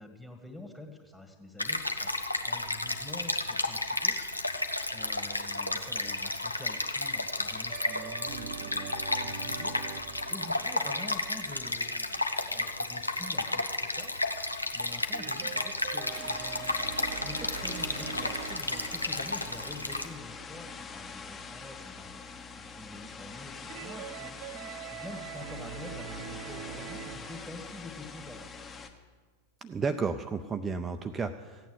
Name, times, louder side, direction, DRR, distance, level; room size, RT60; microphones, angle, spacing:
voice 1, 0.0-2.1 2.4-4.5 4.9-14.1 14.7-16.8 17.2-28.5, left 2 dB, 5° left, 5 dB, 1.8 m, -47 dB
Stream, 1.6-20.1, left 2 dB, 85° left, 1.0 m, -32 dB
sound 1, 7.7-12.6 15.1-21.2 23.7-27.4, right 9 dB, 50° right, 0.8 m, -44 dB
sound 2, 16.1-28.9, left 5 dB, 20° left, 1.4 m, -45 dB
voice 2, 29.6-31.7, right 5 dB, 20° right, 8 dB, 0.6 m, -32 dB
15.5 x 9.2 x 7.9 m, 1.5 s
figure-of-eight pair, 90°, 0 cm